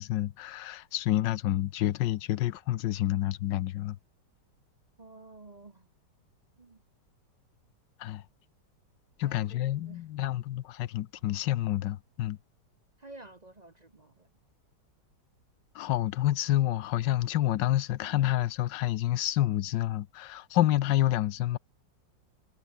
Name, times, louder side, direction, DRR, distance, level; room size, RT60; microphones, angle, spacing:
voice 1, 0.0-4.0 8.0-8.2 9.2-12.4 15.7-21.6, left 14 dB, 85° left, 1.4 m, -28 dB
voice 2, 5.0-5.9 6.6-6.8 9.2-10.0 13.0-14.3, right 2 dB, 30° right, 0.9 m, -51 dB
omnidirectional pair, 1.9 m